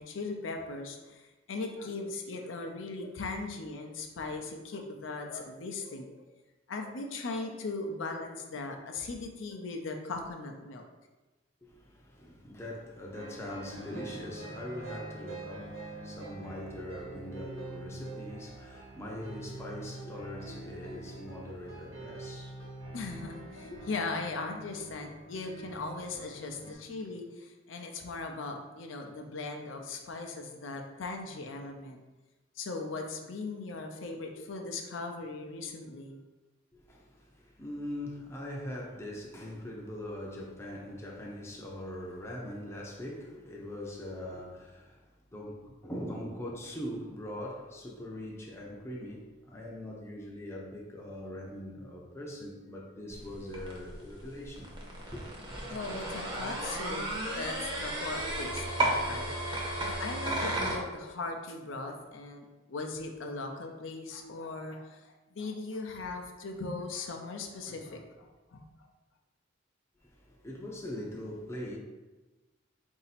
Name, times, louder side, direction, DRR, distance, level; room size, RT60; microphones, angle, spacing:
voice 1, 0.0-6.2 6.7-10.8 22.9-32.0 32.6-36.2 55.7-59.3 59.8-68.9, left 3 dB, 75° left, 0.5 m, -39 dB
voice 2, 11.6-22.7 23.7-23.8 36.7-54.7 55.1-55.6 70.0-71.8, left 1 dB, 15° left, 0.5 m, -42 dB
sound 1, 13.1-26.7, right 2 dB, 90° right, 1.1 m, -45 dB
sound 2, 53.1-60.8, right 1 dB, 25° right, 0.7 m, -34 dB
4.0 x 2.7 x 4.1 m
head